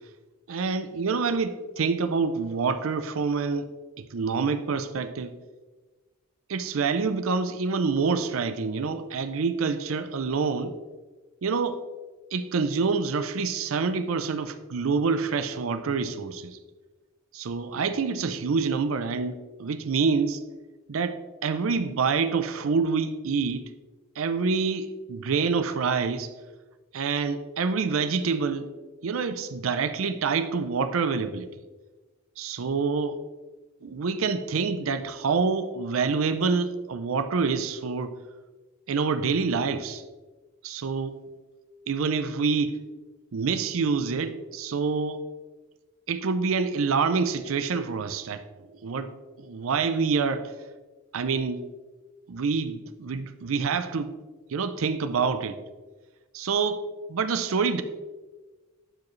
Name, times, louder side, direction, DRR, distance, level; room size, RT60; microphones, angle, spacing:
voice 1, 0.5-3.7 4.0-5.4 6.5-10.7 11.4-11.8 12.3-16.6 17.3-20.4 20.9-23.7 24.2-26.3 26.9-28.7 29.0-31.5 32.4-33.2 33.8-38.1 38.9-40.0 40.6-41.2 41.9-42.8 43.3-45.2 46.1-48.4 48.8-50.5 51.1-51.6 52.3-54.1 54.5-55.5 56.3-56.8 57.1-57.8, right 5 dB, 75° right, 11 dB, 0.5 m, -27 dB
12.0 x 4.8 x 3.2 m, 1.3 s
head